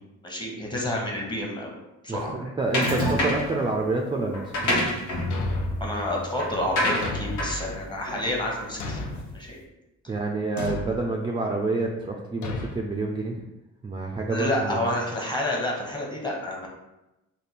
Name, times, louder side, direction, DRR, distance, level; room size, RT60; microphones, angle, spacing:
voice 1, 0.2-1.7 2.0-2.3 5.8-9.0 9.3-9.6 14.3-16.7, left 1 dB, 15° left, -1 dB, 1.0 m, -29 dB
voice 2, 2.1-4.9 10.1-13.4 13.8-14.8, right 3 dB, 15° right, -1 dB, 0.4 m, -28 dB
sound 1, 2.7-3.6 4.3-9.0, left 1 dB, 85° left, 1.1 m, -27 dB
Thump thud, 5.3-5.9 7.0-7.6 8.8-9.4 10.6-11.0 12.4-12.8, left 2 dB, 70° left, 0.6 m, -32 dB
3.4 x 2.2 x 4.1 m, 0.97 s
cardioid pair, 90°, 30 cm